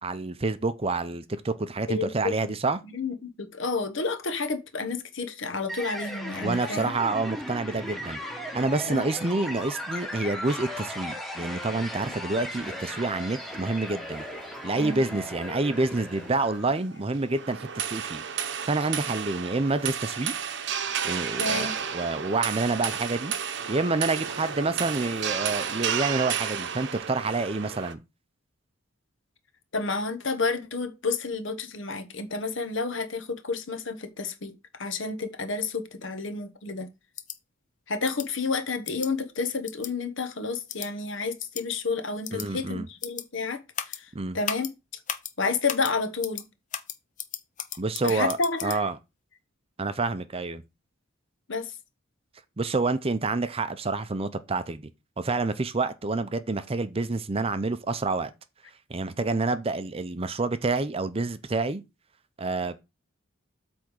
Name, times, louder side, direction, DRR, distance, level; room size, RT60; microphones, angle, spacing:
voice 1, 0.0-2.8 6.4-8.2 8.5-14.3 14.6-18.2 18.7-20.3 21.0-23.3 23.7-28.0 42.3-42.9 44.1-44.4 47.8-49.0 49.8-50.6 52.6-54.8 55.2-58.3 58.9-61.8 62.4-62.8, right 3 dB, 30° right, 0.6 m, -28 dB
voice 2, 1.9-2.5 2.9-6.9 8.8-9.0 14.7-15.0 21.4-21.8 29.7-34.5 34.8-36.9 37.9-44.7 45.4-46.4 48.0-48.8 51.5-51.7, left 4 dB, 60° left, 1.2 m, -30 dB
sound 1, 5.7-16.8, equal, ahead, 1.4 m, -37 dB
sound 2, 12.6-27.9, right 8 dB, 55° right, 0.8 m, -33 dB
sound 3, 37.2-37.4 38.0-38.3 38.9-39.1 39.7-39.9 40.7-40.9 41.4-41.6 42.2-42.5 43.0-43.2 43.7-44.0 44.4-44.7 45.1-45.3 45.7-45.9 46.2-46.4 46.7-48.8, left 9 dB, 40° left, 0.7 m, -35 dB
8.4 x 3.5 x 6.4 m
head